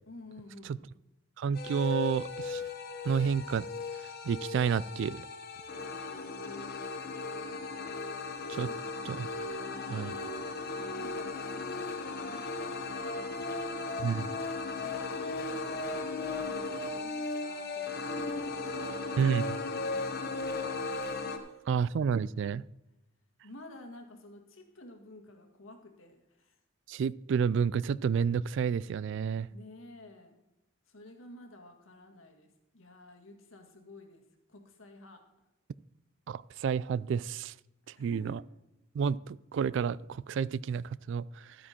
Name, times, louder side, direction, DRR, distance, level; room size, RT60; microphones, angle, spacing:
voice 1, 0.1-0.9 5.7-7.3 8.6-8.9 9.4-10.6 11.0-14.0 14.8-21.6 23.4-26.6 29.5-30.4 30.9-34.2 34.5-35.2 37.8-38.4, left 1 dB, 90° left, 4 dB, 1.9 m, -51 dB
voice 2, 1.4-2.6 3.0-3.6 4.0-5.2 8.5-8.7 9.1-9.3 9.9-10.1 14.0-14.3 19.2-19.4 21.7-22.6 26.9-29.5 36.3-37.5 38.0-38.4 38.9-41.6, right 6 dB, 65° right, 19 dB, 0.3 m, -30 dB
sound 1, 1.5-21.4, left 3 dB, 50° left, 1.1 m, -36 dB
13.0 x 8.9 x 4.3 m, 0.93 s
head